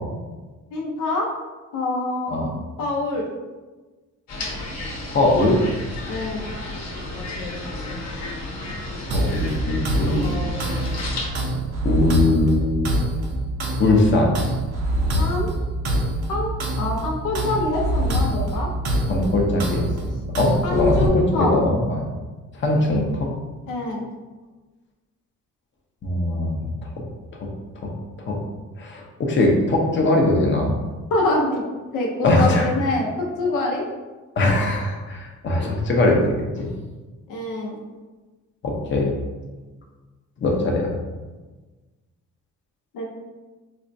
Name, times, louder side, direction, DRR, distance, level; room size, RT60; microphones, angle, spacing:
voice 1, 0.7-1.3 1.7-2.3 2.8-3.3 6.1-6.5 15.2-15.5 16.3-16.5 16.8-18.7 20.6-21.5 23.7-24.0 31.1-31.6 31.9-33.9 37.3-37.8 42.9-43.1, left 2 dB, 85° left, -1 dB, 0.7 m, -25 dB
sound 1, 4.3-11.3, left 2 dB, 60° left, 1.0 m, -32 dB
voice 2, 5.0-5.6 8.0-8.4 9.1-10.4 11.8-13.0 13.8-14.4 19.1-19.9 20.4-22.0 22.5-23.3 26.0-26.7 27.8-27.9 28.3-28.4 28.8-30.7 32.2-32.7 34.4-36.2 36.6-36.7 38.6-39.1 40.4-40.9, left 2 dB, 40° left, 0 dB, 0.7 m, -21 dB
sound 2, 9.1-21.1, right 1 dB, 60° right, 0.7 m, -25 dB
4.2 x 2.2 x 2.6 m, 1.3 s
cardioid pair, 90°, 30 cm